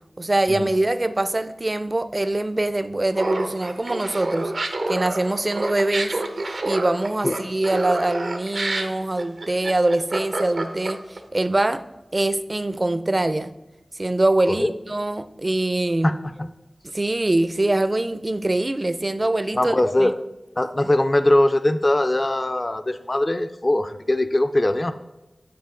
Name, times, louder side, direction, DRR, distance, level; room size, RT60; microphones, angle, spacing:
voice 1, 0.2-4.5 4.9-6.1 6.6-11.8 12.1-13.5 13.9-16.1 16.8-20.1 20.8-20.9, right 2 dB, 40° right, 0.4 m, -23 dB
Laughter, 3.1-11.2, right 2 dB, 90° right, 0.9 m, -28 dB
voice 2, 16.0-16.5 19.5-20.2 20.6-24.9, left 1 dB, 40° left, 0.4 m, -21 dB
9.5 x 4.8 x 3.8 m
wide cardioid pair, 45°, 0 cm